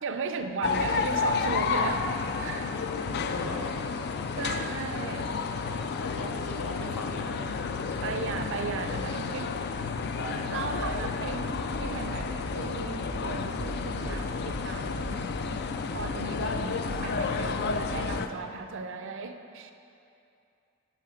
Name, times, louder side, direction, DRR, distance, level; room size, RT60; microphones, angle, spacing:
voice 1, 0.0-2.0 2.4-2.8 4.4-5.3 8.0-9.5 10.5-15.3 15.9-19.7, right 4 dB, 60° right, 6 dB, 0.5 m, -36 dB
sound 1, 0.6-18.3, left 5 dB, 50° left, 0.4 m, -31 dB
voice 2, 3.3-3.8 5.4-7.4 10.2-11.1, left 2 dB, 75° left, 2 dB, 0.9 m, -39 dB
sound 2, 10.7-18.3, right 1 dB, 15° right, 0.5 m, -42 dB
7.4 x 5.8 x 5.6 m, 2.6 s
head